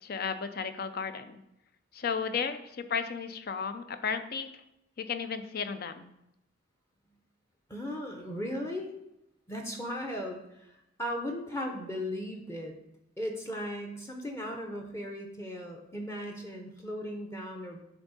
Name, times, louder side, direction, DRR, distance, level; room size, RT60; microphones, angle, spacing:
voice 1, 0.0-1.4 1.9-4.5 5.0-6.1, left 6 dB, 50° left, 9 dB, 0.5 m, -34 dB
voice 2, 7.7-8.9 9.5-10.7 11.0-12.7 13.2-17.8, equal, 15° left, 1 dB, 0.7 m, -37 dB
10.5 x 3.5 x 4.1 m, 0.85 s
head